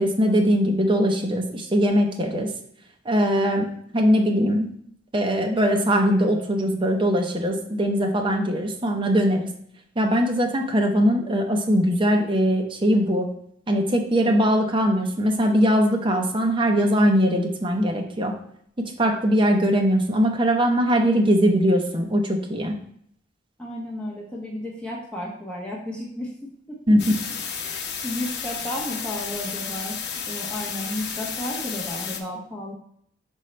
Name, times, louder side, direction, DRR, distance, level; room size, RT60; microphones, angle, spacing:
voice 1, 0.0-2.5 3.0-3.7 3.9-4.7 5.1-9.5 10.0-13.3 13.7-18.3 18.8-22.8 26.9-27.0, equal, 25° right, 2 dB, 0.7 m, -21 dB
voice 2, 23.6-26.8 27.6-30.0 30.3-32.7, left 1 dB, 5° left, -4 dB, 1.0 m, -33 dB
sound 1, 27.0-32.2, left 6 dB, 60° left, 0.8 m, -32 dB
5.5 x 5.4 x 3.1 m, 0.68 s
head